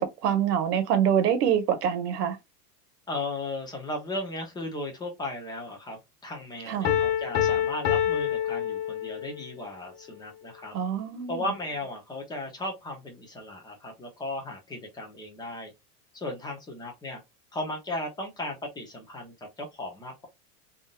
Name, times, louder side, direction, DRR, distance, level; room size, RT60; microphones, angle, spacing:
voice 1, 0.0-2.4 6.7-6.9 10.7-11.4, right 9 dB, 80° right, 1.1 m, -25 dB
voice 2, 3.1-10.8 11.3-15.7 16.1-17.2 17.5-20.3, left 1 dB, 10° left, 0.6 m, -36 dB
Piano, 6.8-9.4, left 10 dB, 80° left, 1.0 m, -26 dB
3.6 x 2.6 x 2.2 m
supercardioid pair, 155°, 46 cm